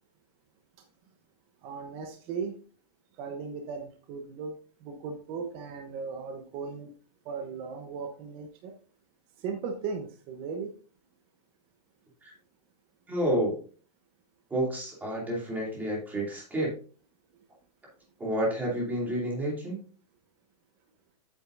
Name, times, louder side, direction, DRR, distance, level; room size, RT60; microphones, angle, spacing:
voice 1, 1.6-2.6 3.2-4.5 4.8-6.9 7.2-8.7 9.4-10.7, right 5 dB, 25° right, 4 dB, 0.9 m, -37 dB
voice 2, 13.1-13.6 14.5-16.7 18.2-19.8, right 1 dB, 10° right, -3 dB, 2.7 m, -30 dB
8.2 x 7.8 x 2.6 m, 0.40 s
supercardioid pair, 165°, 20 cm